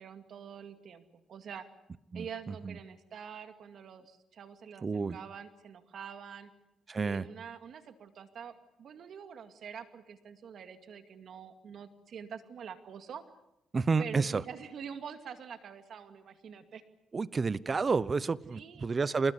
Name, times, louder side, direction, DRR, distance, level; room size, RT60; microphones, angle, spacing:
voice 1, 0.0-1.7 2.1-6.5 7.0-13.2 14.0-16.8 18.5-18.9, right 7 dB, 60° right, 8 dB, 2.3 m, -46 dB
voice 2, 4.8-5.2 6.9-7.3 13.7-14.4 17.1-19.3, right 4 dB, 35° right, 18 dB, 1.0 m, -30 dB
27.0 x 20.5 x 8.3 m, 0.86 s
cardioid pair, 90°, 0 cm